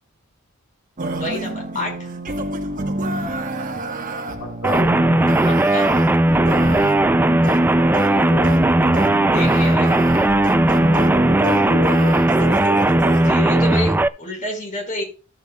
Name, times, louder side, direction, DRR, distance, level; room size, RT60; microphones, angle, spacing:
sound 1, 1.0-13.3, right 2 dB, 40° right, 1.3 m, -27 dB
voice 1, 1.2-2.1 5.4-5.9 9.3-9.9 13.2-15.0, left 1 dB, 40° left, 0 dB, 4.6 m, -28 dB
voice 2, 4.4-4.9 8.0-8.6 11.4-12.8, left 2 dB, 75° left, -2 dB, 2.6 m, -30 dB
sound 2, 4.6-14.1, right 1 dB, 10° right, 0.3 m, -17 dB
13.5 x 7.5 x 2.3 m, 0.34 s
head